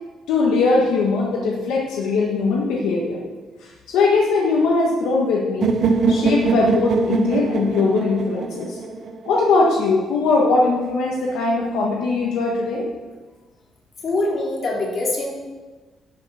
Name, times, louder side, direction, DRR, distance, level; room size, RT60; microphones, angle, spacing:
voice 1, 0.3-3.2 3.9-5.8 6.1-8.8 9.2-12.9, left 3 dB, 90° left, -2 dB, 1.4 m, -20 dB
sound 1, 5.6-9.6, right 4 dB, 60° right, 0.8 m, -22 dB
voice 2, 14.0-15.3, left 2 dB, 50° left, -3 dB, 3.4 m, -23 dB
11.0 x 5.9 x 6.1 m, 1.3 s
cardioid pair, 90°, 0 cm